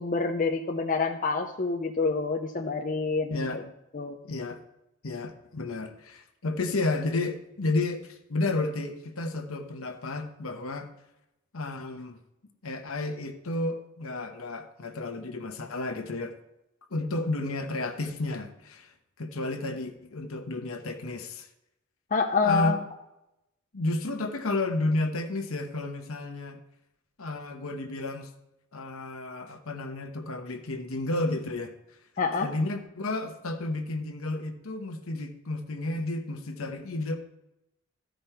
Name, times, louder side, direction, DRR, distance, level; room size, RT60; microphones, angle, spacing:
voice 1, 0.0-3.6 3.9-4.2 22.1-22.8 32.2-32.5, left 4 dB, 40° left, 2 dB, 0.7 m, -27 dB
voice 2, 3.3-3.6 4.2-4.6 5.0-10.9 11.5-12.2 12.6-16.4 16.9-18.9 19.2-21.5 22.4-22.8 23.7-26.6 27.2-28.3 28.7-31.7 32.4-37.2, left 2 dB, 70° left, 5 dB, 1.0 m, -32 dB
13.5 x 5.2 x 4.4 m, 0.89 s
head